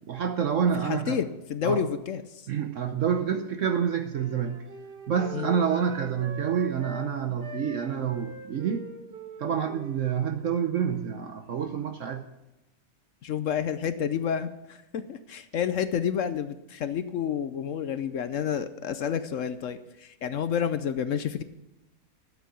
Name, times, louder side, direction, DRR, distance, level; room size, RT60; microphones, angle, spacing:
voice 1, 0.1-1.2 1.6-1.8 2.5-4.6 5.1-8.9 9.4-12.2, right 7 dB, 60° right, 7 dB, 1.0 m, -28 dB
voice 2, 0.8-2.2 5.3-5.5 13.2-21.4, left 8 dB, 60° left, 12 dB, 0.9 m, -29 dB
Wind instrument woodwind instrument, 3.1-7.1 7.4-11.9, right 3 dB, 90° right, 2.2 m, -43 dB
12.5 x 8.4 x 7.1 m, 0.94 s
omnidirectional pair, 1.7 m